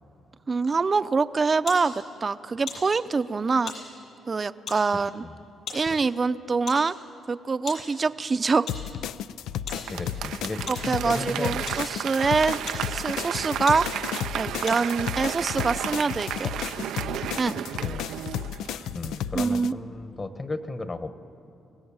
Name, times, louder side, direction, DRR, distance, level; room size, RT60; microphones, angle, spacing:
voice 1, 0.5-3.7 4.3-5.2 5.7-6.9 7.3-8.7 10.7-12.6 12.9-13.9 14.3-16.5 17.4-17.5 19.3-19.7, right 4 dB, 35° right, 12 dB, 0.6 m, -25 dB
sound 1, 1.7-1.9 2.7-2.9 3.7-3.9 4.7-4.9 5.7-5.9 6.7-6.9 7.7-7.9 8.7-8.9 9.7-9.9 10.7-10.9 11.7-11.9 12.6-12.9 13.3-13.4 13.7-13.9 14.7-15.0, left 5 dB, 60° left, 7.7 m, -37 dB
sound 2, 8.7-19.7, left 10 dB, 85° left, 0.5 m, -33 dB
voice 2, 9.7-11.6 17.8-18.1 18.9-21.1, left 2 dB, 30° left, 10 dB, 1.3 m, -35 dB
Applause / Crowd, 9.7-19.1 19.5-19.6, right 10 dB, 80° right, 0.5 m, -33 dB
24.5 x 17.0 x 8.9 m, 2.7 s
cardioid pair, 90°, 0 cm